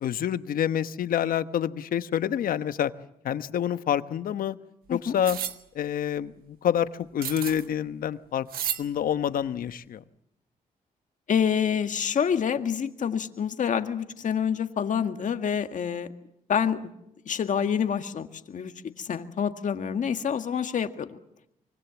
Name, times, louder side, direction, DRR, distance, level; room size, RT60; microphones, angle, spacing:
voice 1, 0.0-2.9 3.2-4.6 4.9-5.4 5.7-8.4 8.8-10.0, left 9 dB, 75° left, 12 dB, 1.1 m, -27 dB
sound 1, 5.2-5.6 7.2-7.7 8.5-8.8, right 10 dB, 85° right, 1.4 m, -32 dB
voice 2, 11.3-16.1 16.5-16.9 17.3-18.7 19.0-21.2, left 7 dB, 60° left, 7 dB, 1.8 m, -27 dB
25.0 x 24.0 x 7.2 m, 0.79 s
cardioid pair, 85°, 15 cm